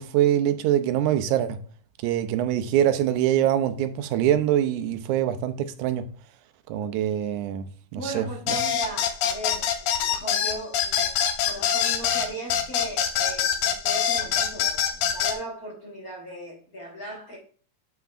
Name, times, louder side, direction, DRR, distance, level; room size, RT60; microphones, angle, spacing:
voice 1, 0.0-1.6 2.0-6.1 6.7-7.7 7.9-8.6, right 11 dB, 85° right, 2.1 m, -24 dB
voice 2, 7.9-17.4, right 1 dB, 40° left, 1.5 m, -38 dB
sound 1, 8.5-15.4, left 9 dB, 75° left, 2.0 m, -24 dB
8.1 x 5.9 x 2.5 m
omnidirectional pair, 3.3 m